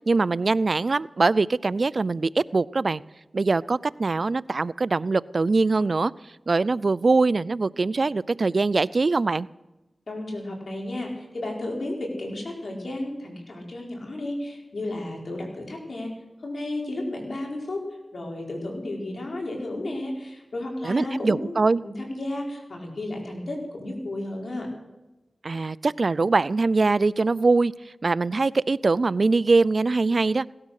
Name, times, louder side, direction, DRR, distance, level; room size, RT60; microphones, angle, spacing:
voice 1, 0.1-3.0 3.3-6.1 6.5-9.5 20.8-21.8 25.4-27.7 28.0-30.5, right 3 dB, 65° right, 21 dB, 0.4 m, -22 dB
voice 2, 10.1-16.1 16.4-17.8 18.1-21.5 21.8-24.7, left 1 dB, 70° left, 1 dB, 5.0 m, -33 dB
17.5 x 12.5 x 6.5 m, 1.0 s
cardioid pair, 40°, 0 cm